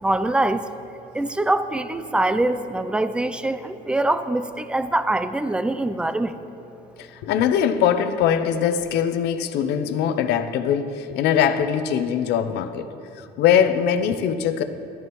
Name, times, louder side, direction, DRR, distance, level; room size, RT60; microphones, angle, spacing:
voice 1, 0.0-0.7 1.1-6.4, right 2 dB, 5° right, 11 dB, 0.4 m, -23 dB
voice 2, 7.0-12.9 13.1-14.6, left 8 dB, 85° left, 10 dB, 0.6 m, -22 dB
13.5 x 10.5 x 3.0 m, 2.7 s
cardioid pair, 110°, 17 cm